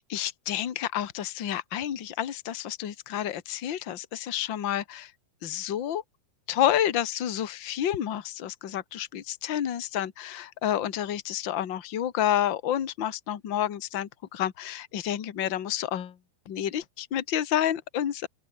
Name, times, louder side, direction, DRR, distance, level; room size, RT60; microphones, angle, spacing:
voice 1, 0.1-5.1 5.4-6.0 6.5-16.1 16.4-18.3, left 11 dB, 45° left, 1.5 m, -29 dB
open air
omnidirectional pair, 4.4 m